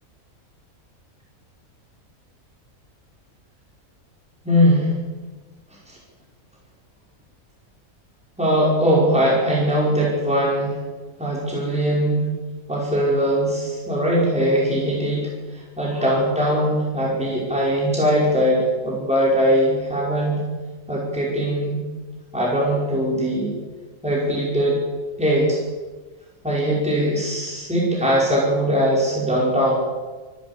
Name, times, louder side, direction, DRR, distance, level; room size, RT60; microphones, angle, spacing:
voice 1, 4.4-4.9 5.9-6.0 8.4-10.8 11.2-12.3 12.7-20.4 20.9-21.8 22.3-23.5 24.0-24.8 25.2-25.6 26.4-29.7, equal, 5° right, -5 dB, 5.3 m, -20 dB
25.5 x 12.5 x 8.4 m, 1.3 s
omnidirectional pair, 1.5 m